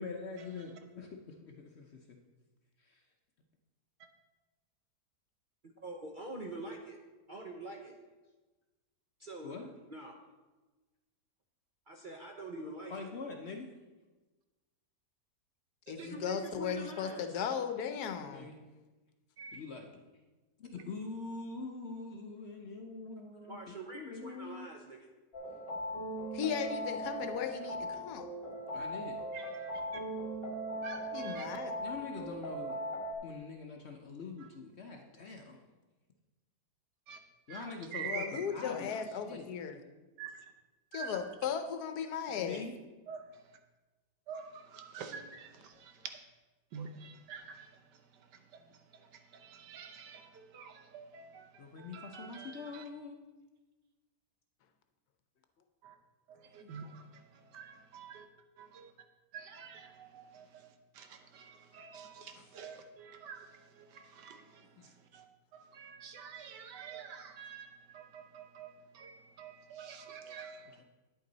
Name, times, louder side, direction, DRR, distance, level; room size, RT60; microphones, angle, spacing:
voice 1, 0.0-2.2 2.8-3.0 9.4-9.7 12.9-13.7 18.3-18.6 19.5-20.0 20.6-24.7 28.7-29.2 31.8-32.8 33.2-35.6 37.5-39.5 42.4-42.7 51.6-53.2 70.8-70.9, left 4 dB, 55° left, 3 dB, 0.8 m, -44 dB
voice 2, 5.8-7.0 7.3-7.9 9.2-9.5 9.9-10.1 11.9-13.1 15.9-17.2 23.5-25.1, right 2 dB, 45° right, 1 dB, 0.6 m, -44 dB
voice 3, 15.9-18.5 26.3-28.3 31.1-31.7 38.0-39.8 40.9-42.6 56.6-56.7, left 7 dB, 70° left, 7 dB, 1.2 m, -36 dB
sound 1, 25.3-33.1, right 1 dB, 35° left, 1.5 m, -39 dB
voice 4, 29.3-29.8 30.8-31.6 37.1-37.2 37.5-38.4 40.2-40.4 40.9-41.2 43.1-43.2 44.3-46.1 46.7-47.7 48.1-48.6 48.9-52.8 56.4-58.3 58.6-58.9 59.3-65.2 65.5-70.8, right 6 dB, 85° right, 6 dB, 1.5 m, -48 dB
9.5 x 8.3 x 3.9 m, 1.2 s
omnidirectional pair, 1.8 m